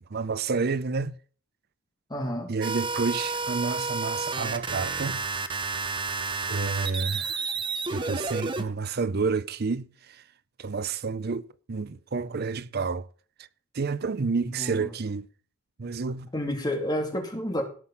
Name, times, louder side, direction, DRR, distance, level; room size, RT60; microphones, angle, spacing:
voice 1, 0.1-1.2 2.5-5.2 6.5-7.6 7.9-10.2 10.6-13.1 13.7-15.3 15.8-16.3, right 4 dB, 45° right, 0.5 m, -30 dB
voice 2, 2.1-2.5 14.4-14.9 16.3-17.6, left 1 dB, 20° left, 2.3 m, -30 dB
sound 1, 2.6-8.6, right 4 dB, 25° right, 1.0 m, -31 dB
17.0 x 6.1 x 5.5 m
head